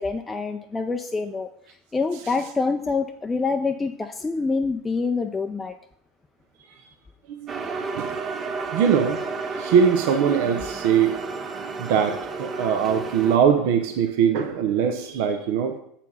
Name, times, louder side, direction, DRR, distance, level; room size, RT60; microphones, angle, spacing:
voice 1, 0.0-1.5 1.9-5.8, left 4 dB, 20° left, 5 dB, 0.5 m, -26 dB
sound 1, 7.5-13.4, right 4 dB, 35° right, 0.8 m, -32 dB
voice 2, 8.7-9.2 9.5-11.1 11.8-15.7, right 7 dB, 65° right, 6 dB, 0.7 m, -21 dB
7.1 x 4.4 x 5.6 m, 0.70 s
hypercardioid pair, 80°, 0 cm